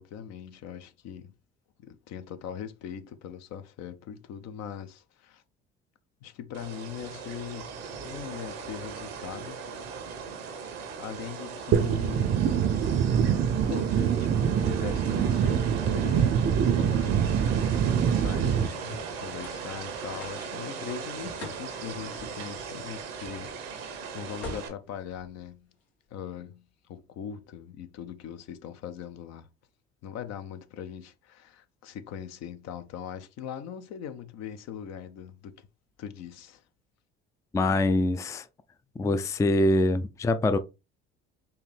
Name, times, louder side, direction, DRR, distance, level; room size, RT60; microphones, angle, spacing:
voice 1, 0.0-1.3 1.8-5.4 6.2-7.7 8.0-9.6 10.4-12.4 13.6-14.3 14.6-18.8 19.2-25.7 26.1-26.6 26.9-29.5 30.0-35.7 36.0-36.6, left 9 dB, 60° left, 0.7 m, -41 dB
sound 1, 6.5-24.7, right 5 dB, 85° right, 1.0 m, -38 dB
sound 2, 11.7-18.7, right 8 dB, 45° right, 0.5 m, -24 dB
sound 3, 19.9-26.1, left 3 dB, 85° left, 1.4 m, -48 dB
voice 2, 37.5-38.5 39.0-40.6, left 2 dB, 10° left, 0.4 m, -24 dB
4.6 x 2.7 x 3.3 m
hypercardioid pair, 65°, 29 cm